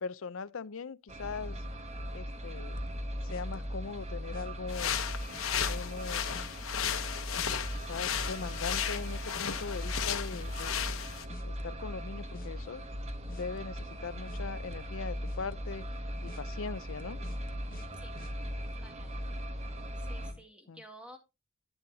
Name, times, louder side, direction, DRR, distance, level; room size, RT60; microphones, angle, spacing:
voice 1, 0.0-1.6 2.1-2.8 3.2-5.0 5.6-6.5 7.9-11.0 11.4-12.8 13.3-15.8 16.2-17.2 20.3-20.8, left 5 dB, 70° left, 0.5 m, -40 dB
sound 1, 1.1-20.3, equal, 30° right, 1.2 m, -39 dB
sound 2, 2.8-3.9 4.3-4.5 5.1-5.8 6.3-6.5 6.8-7.1 7.4-7.9 8.4-8.5 9.1-11.0 11.3-12.0 12.3-12.5 13.1-14.4 14.7-15.0 15.3-15.8 16.3-16.4 17.0-18.3, left 1 dB, 45° left, 0.9 m, -46 dB
sound 3, 4.7-11.3, left 9 dB, 90° left, 1.1 m, -35 dB
voice 2, 18.8-19.3 20.0-21.2, equal, 5° right, 2.0 m, -52 dB
11.5 x 9.1 x 2.8 m
head